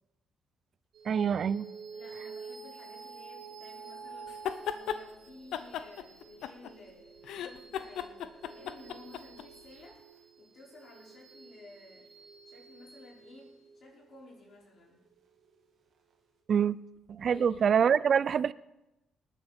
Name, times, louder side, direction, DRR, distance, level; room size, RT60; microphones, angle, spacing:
sound 1, 0.9-15.7, right 5 dB, 70° right, 2.3 m, -50 dB
voice 1, 1.1-1.7 16.5-16.8 17.1-18.5, right 7 dB, 55° right, 19 dB, 0.4 m, -25 dB
voice 2, 1.9-12.1 12.4-15.0 17.2-17.7, left 2 dB, 55° left, -3 dB, 5.1 m, -54 dB
sound 2, 4.3-5.0 5.5-6.9 7.2-9.4, left 9 dB, 80° left, 0.7 m, -36 dB
19.5 x 10.0 x 4.4 m, 0.93 s
cardioid pair, 90°, 0 cm